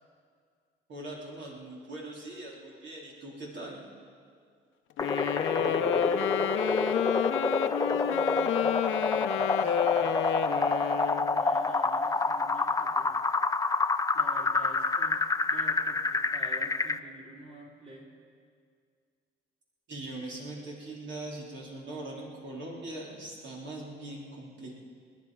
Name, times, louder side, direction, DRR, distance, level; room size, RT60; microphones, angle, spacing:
voice 1, 0.9-3.8 19.9-24.8, right 2 dB, 65° right, -4 dB, 3.3 m, -41 dB
Wind instrument woodwind instrument, 5.0-11.4, left 10 dB, 80° left, 0.8 m, -30 dB
sound 1, 5.0-17.0, left 3 dB, 15° left, 0.6 m, -28 dB
voice 2, 5.5-6.9 7.8-10.7 11.1-13.2 14.1-18.1, right 1 dB, 30° right, -2 dB, 3.4 m, -49 dB
29.5 x 10.0 x 4.8 m, 2.1 s
cardioid pair, 90°, 20 cm